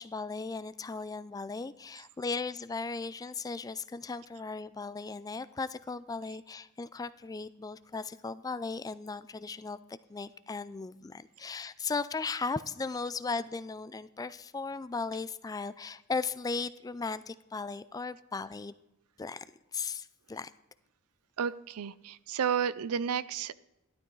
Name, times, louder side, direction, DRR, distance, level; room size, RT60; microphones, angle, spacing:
voice 1, 0.0-18.7 19.2-19.4 19.7-20.5, left 4 dB, 15° left, 15 dB, 0.3 m, -37 dB
voice 2, 21.4-23.5, right 7 dB, 75° right, 18 dB, 0.5 m, -31 dB
13.5 x 12.5 x 3.9 m, 0.95 s
head